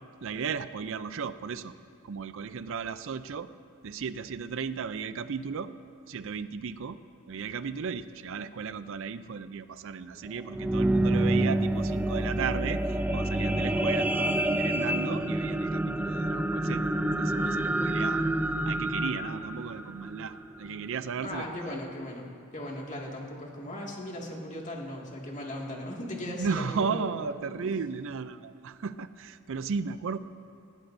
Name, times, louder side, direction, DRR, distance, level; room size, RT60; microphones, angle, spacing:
voice 1, 0.2-1.7 2.0-3.5 3.8-5.7 6.1-7.0 7.3-12.8 13.1-18.2 18.7-21.8 26.2-30.2, right 5 dB, 65° right, 13 dB, 0.5 m, -35 dB
sound 1, 10.3-20.8 21.4-21.5, right 1 dB, 10° right, 0.4 m, -28 dB
voice 2, 21.2-27.1 27.6-27.7, left 1 dB, 35° left, -2 dB, 2.1 m, -38 dB
19.0 x 15.5 x 2.7 m, 2.3 s
head